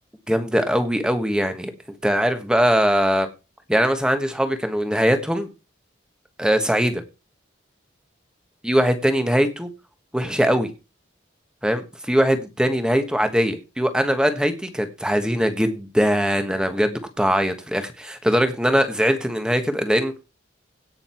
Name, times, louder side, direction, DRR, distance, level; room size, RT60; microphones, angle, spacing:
voice 1, 0.3-1.7 2.0-3.3 3.7-5.5 6.4-7.0 8.6-9.7 10.1-10.7 11.6-20.1, equal, 5° right, 8 dB, 1.4 m, -21 dB
17.0 x 6.5 x 4.5 m, 0.29 s
head